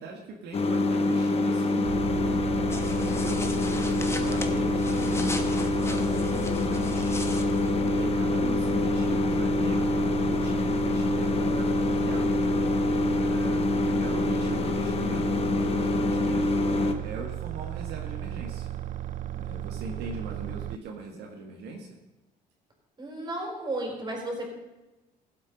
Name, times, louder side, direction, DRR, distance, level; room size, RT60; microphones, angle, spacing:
voice 1, 0.0-2.3 2.9-12.3 12.7-16.5 17.0-18.7 19.3-22.0, right 4 dB, 80° right, 1 dB, 1.8 m, -40 dB
sound 1, 0.5-16.9, left 3 dB, 35° left, 1.1 m, -26 dB
sound 2, 1.8-20.8, right 12 dB, 50° right, 0.4 m, -35 dB
sound 3, 2.7-8.1, left 2 dB, 15° left, 1.2 m, -39 dB
voice 2, 23.0-24.4, right 1 dB, 25° right, 1 dB, 4.3 m, -33 dB
15.5 x 8.1 x 5.3 m, 1.0 s
cardioid pair, 110°, 17 cm